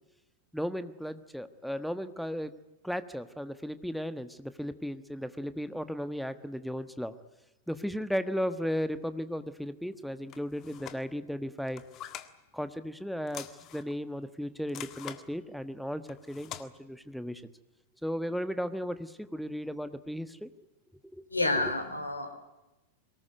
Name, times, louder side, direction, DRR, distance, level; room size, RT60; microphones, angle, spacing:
voice 1, 0.5-2.5 2.8-7.1 7.7-11.8 12.5-13.5 13.7-16.0 16.3-17.5 18.0-20.5 21.1-21.3 21.6-21.7, equal, ahead, 12 dB, 1.3 m, -35 dB
sound 1, 10.3-11.0 11.6-12.3 13.3-14.0 14.7-15.2 16.1-16.7, left 11 dB, 35° left, 1.7 m, -44 dB
voice 2, 21.3-22.3, left 2 dB, 85° left, 6 dB, 3.5 m, -29 dB
23.0 x 20.0 x 9.4 m, 0.98 s
figure-of-eight pair, 90°, 0 cm